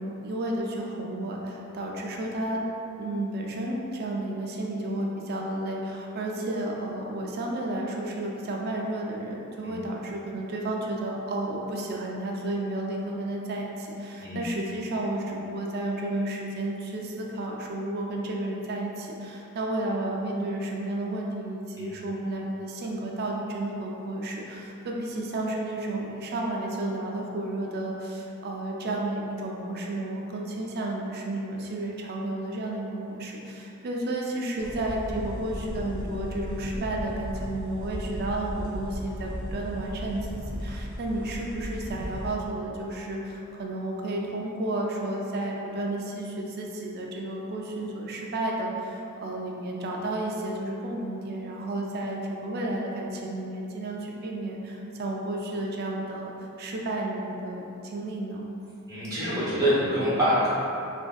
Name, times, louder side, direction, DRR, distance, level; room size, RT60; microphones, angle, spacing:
voice 1, 0.0-2.6 3.0-56.3 56.6-58.5, right 1 dB, 50° right, -1 dB, 0.3 m, -32 dB
sound 1, 34.6-42.3, equal, 20° left, 0.6 m, -36 dB
voice 2, 58.9-60.5, equal, 15° right, -10 dB, 0.9 m, -25 dB
3.3 x 2.5 x 2.2 m, 2.8 s
head